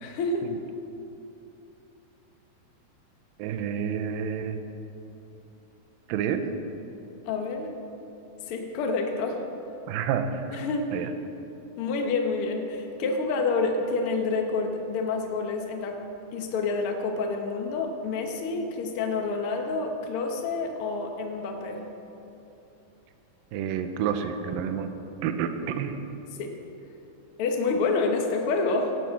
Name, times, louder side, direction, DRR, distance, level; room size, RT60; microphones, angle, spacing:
voice 1, 0.0-0.5 7.2-7.7 8.5-9.4 10.5-10.9 11.8-16.0 16.3-21.8 26.4-26.5 27.4-29.0, left 3 dB, 85° left, 3 dB, 1.2 m, -28 dB
voice 2, 3.4-4.6 6.1-6.5 9.9-10.6 10.9-11.1 23.5-24.9 25.2-26.0, right 7 dB, 75° right, 8 dB, 2.4 m, -29 dB
17.0 x 9.4 x 5.8 m, 2.9 s
omnidirectional pair, 4.3 m